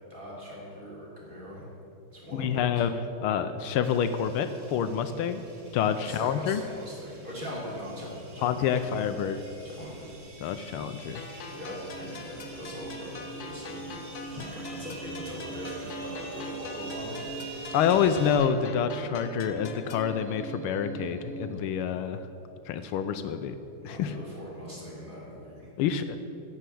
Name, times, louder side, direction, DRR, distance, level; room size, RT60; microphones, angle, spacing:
voice 1, 0.1-1.7 2.1-2.8 5.9-9.1 9.6-10.2 11.5-14.0 14.3-17.2 23.8-25.7, equal, 20° right, -6 dB, 3.2 m, -41 dB
voice 2, 2.3-2.9 3.2-5.4 5.7-6.6 8.4-9.4 10.4-11.2 17.7-22.2 22.7-23.6 23.8-24.1 25.8-26.2, left 8 dB, 80° left, 10 dB, 1.5 m, -27 dB
sound 1, 3.8-18.4, right 2 dB, 50° right, 2.4 m, -48 dB
sound 2, 10.7-22.1, right 3 dB, 80° right, 1.8 m, -42 dB
sound 3, 11.1-20.1, left 5 dB, 55° left, 1.1 m, -44 dB
16.0 x 5.7 x 7.7 m, 2.9 s
omnidirectional pair, 2.4 m